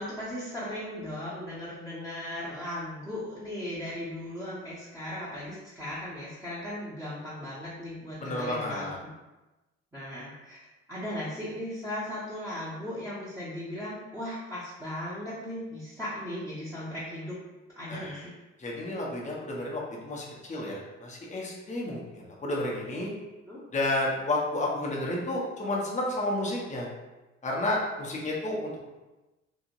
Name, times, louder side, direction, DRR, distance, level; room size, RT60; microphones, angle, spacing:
voice 1, 0.0-9.1 9.9-10.6 10.9-17.4 17.8-18.3 23.5-23.6, left 1 dB, 5° right, -10 dB, 1.0 m, -37 dB
voice 2, 8.2-9.0 17.9-18.3 18.6-23.1 23.7-26.9 27.4-28.9, left 1 dB, 20° left, -3 dB, 0.8 m, -31 dB
2.9 x 2.7 x 2.6 m, 1.1 s
figure-of-eight pair, 45°, 35 cm